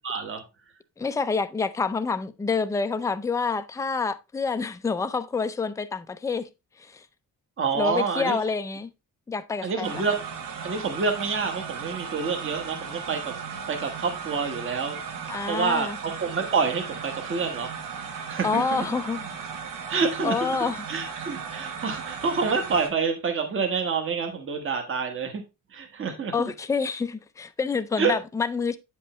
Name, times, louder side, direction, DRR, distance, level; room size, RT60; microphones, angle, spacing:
voice 1, 0.0-0.4 7.6-8.4 9.6-10.2 10.6-13.3 13.7-15.0 15.5-17.7 18.3-18.8 19.9-20.3 20.9-25.4 25.7-26.5 28.0-28.1, right 5 dB, 40° right, 1.3 m, -27 dB
voice 2, 1.0-6.5 6.8-7.1 7.7-8.9 9.3-10.0 15.3-16.0 18.4-19.3 20.2-20.9 26.3-28.8, left 5 dB, 10° left, 0.3 m, -27 dB
sound 1, 9.8-22.9, right 6 dB, 75° right, 1.4 m, -36 dB
8.9 x 5.3 x 3.0 m
wide cardioid pair, 180°, 33 cm